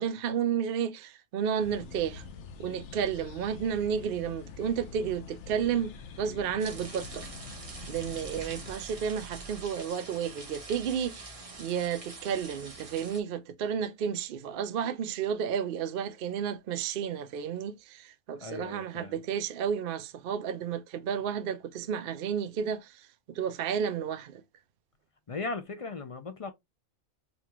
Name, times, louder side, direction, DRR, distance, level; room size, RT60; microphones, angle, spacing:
voice 1, 0.0-2.2 2.6-5.9 6.2-7.3 7.9-24.4, right 8 dB, 60° right, 0.6 m, -32 dB
sound 1, 1.6-8.7, left 5 dB, 65° left, 0.9 m, -46 dB
sound 2, 6.6-13.2, right 3 dB, 30° right, 1.0 m, -44 dB
voice 2, 18.4-19.2 25.3-26.5, left 3 dB, 50° left, 0.4 m, -37 dB
5.1 x 2.4 x 2.9 m
omnidirectional pair, 1.4 m